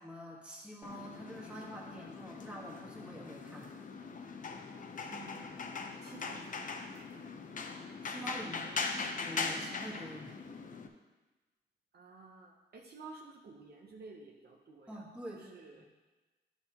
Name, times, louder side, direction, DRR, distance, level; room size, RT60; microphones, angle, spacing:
voice 1, 0.0-3.7 8.0-10.4 14.9-15.9, equal, 5° right, -3 dB, 1.5 m, -46 dB
sound 1, 0.8-10.9, left 4 dB, 45° left, 0.7 m, -41 dB
voice 2, 5.1-5.5 6.0-7.2 8.3-8.9 11.9-15.0 15.3-15.8, right 3 dB, 60° right, 0 dB, 0.8 m, -53 dB
11.5 x 5.7 x 3.0 m, 1.2 s
wide cardioid pair, 120°, 18 cm